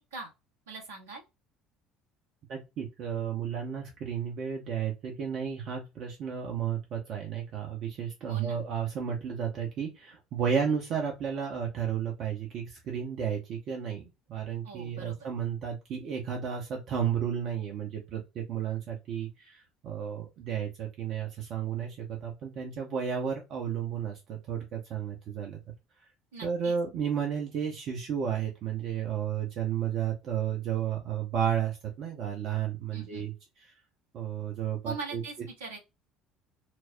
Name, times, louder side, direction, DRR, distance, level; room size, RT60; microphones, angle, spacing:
voice 1, 0.7-1.2 8.3-8.6 14.6-15.3 26.3-26.8 32.9-33.3 34.8-35.8, right 4 dB, 75° right, 0 dB, 1.1 m, -41 dB
voice 2, 2.5-14.0 14.3-25.6 26.4-33.3 34.1-35.2, right 8 dB, 50° right, 0 dB, 0.8 m, -32 dB
4.6 x 2.0 x 2.6 m, 0.25 s
figure-of-eight pair, 60°, 0 cm